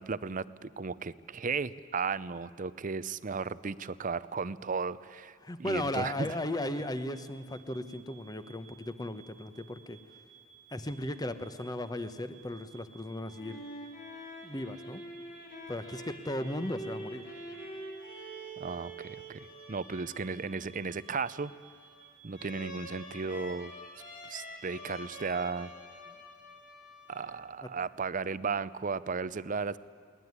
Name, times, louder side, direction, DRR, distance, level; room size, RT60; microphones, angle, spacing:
voice 1, 0.0-6.3 18.6-21.5 22.2-23.7 24.2-25.7 27.1-29.8, right 5 dB, 45° right, 16 dB, 0.6 m, -35 dB
voice 2, 5.4-10.0 10.7-13.6 14.4-15.0 15.7-17.2, left 1 dB, 20° left, 11 dB, 1.0 m, -36 dB
sound 1, 6.1-25.4, right 7 dB, 80° left, 3.8 m, -59 dB
sound 2, 13.1-27.8, right 1 dB, 45° left, 3.1 m, -46 dB
22.0 x 18.0 x 9.7 m, 2.2 s
head